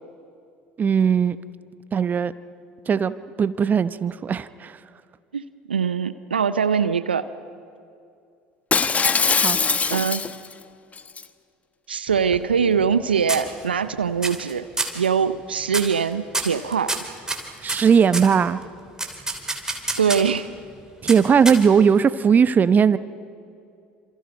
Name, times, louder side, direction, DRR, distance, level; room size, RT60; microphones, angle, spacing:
voice 1, 0.8-1.4 1.9-2.3 2.9-4.8 9.4-9.6 17.6-18.6 21.0-23.0, right 6 dB, 35° right, 15 dB, 0.8 m, -18 dB
voice 2, 5.3-7.3 9.9-10.2 11.9-14.7 14.9-16.9 20.0-20.5, right 6 dB, 90° right, 13 dB, 0.6 m, -22 dB
Shatter, 8.7-10.5 11.0-11.2, left 5 dB, 25° left, 1.0 m, -21 dB
sound 1, 12.1-13.0 13.3-13.9 14.2-14.5 14.8-15.1 15.7-16.0 16.3-18.3 19.0-20.4 21.1-21.9, right 2 dB, 10° right, 3.1 m, -28 dB
27.0 x 27.0 x 5.3 m, 2.4 s
hypercardioid pair, 65°, 5 cm